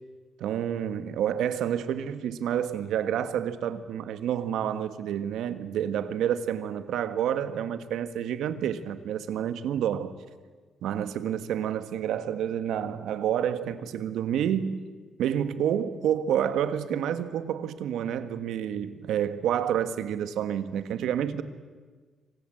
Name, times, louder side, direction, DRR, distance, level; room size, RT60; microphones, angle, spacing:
voice 1, 0.4-10.1 10.8-14.9 15.2-21.4, right 9 dB, 85° right, 1.6 m, -29 dB
26.5 x 25.0 x 7.8 m
cardioid pair, 135°, 0 cm